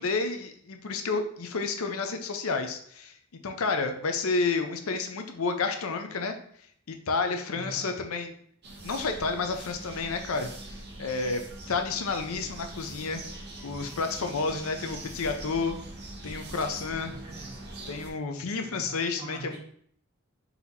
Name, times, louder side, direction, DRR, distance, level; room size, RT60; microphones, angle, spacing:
voice 1, 0.0-3.1 3.4-6.3 6.9-8.3 8.8-10.5 11.0-11.4 11.7-13.2 13.6-15.8 16.2-17.1 17.9-19.6, left 4 dB, 70° left, 6 dB, 0.6 m, -30 dB
voice 2, 7.5-7.9 16.7-17.6 18.6-19.6, right 2 dB, 20° right, -8 dB, 1.8 m, -44 dB
sound 1, 8.6-18.1, right 2 dB, 50° right, 0.9 m, -43 dB
4.1 x 2.9 x 4.0 m, 0.63 s
head